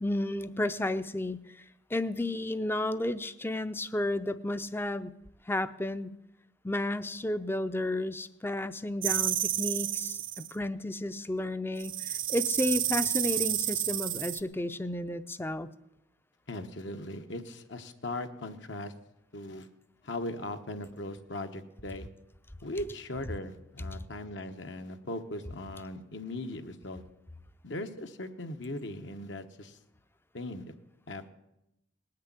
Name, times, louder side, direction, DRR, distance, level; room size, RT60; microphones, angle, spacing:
voice 1, 0.0-1.4 1.9-5.1 5.5-6.1 6.6-10.2 10.5-15.7, left 1 dB, 10° left, 13 dB, 0.5 m, -32 dB
sound 1, 9.0-10.5 11.8-14.4, right 12 dB, 45° right, 0.6 m, -30 dB
voice 2, 16.5-18.9 19.3-19.7 20.0-22.1 22.6-27.0 27.6-29.8 30.3-30.7 31.1-31.3, left 1 dB, 65° left, 6 dB, 1.2 m, -39 dB
19.0 x 6.7 x 9.7 m, 0.87 s
head